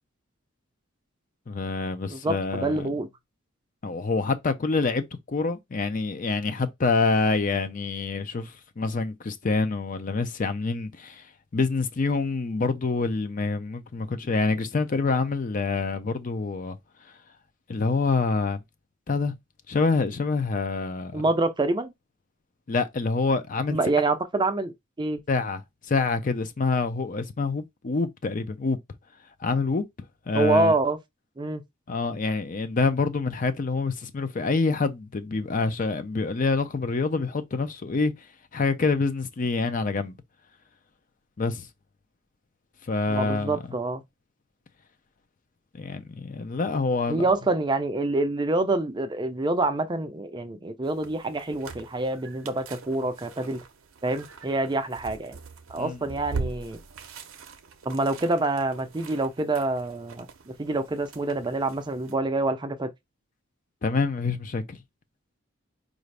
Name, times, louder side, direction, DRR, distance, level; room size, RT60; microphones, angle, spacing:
voice 1, 1.5-2.9 3.8-11.3 11.5-16.8 17.7-18.6 19.1-19.3 19.7-21.2 22.7-23.8 25.3-28.8 29.4-29.8 30.3-30.7 31.9-38.3 38.5-40.1 41.4-41.7 42.8-43.6 45.7-47.3 55.8-56.0 63.8-64.8, left 3 dB, 40° left, 0.5 m, -26 dB
voice 2, 2.1-3.1 21.1-21.9 23.7-25.2 30.3-31.0 31.4-31.6 43.1-44.0 47.1-53.6 54.0-55.4 55.7-56.8 57.8-62.9, right 2 dB, 20° right, 0.5 m, -26 dB
sound 1, 50.8-62.2, right 4 dB, 75° right, 0.6 m, -42 dB
4.9 x 2.6 x 3.2 m
head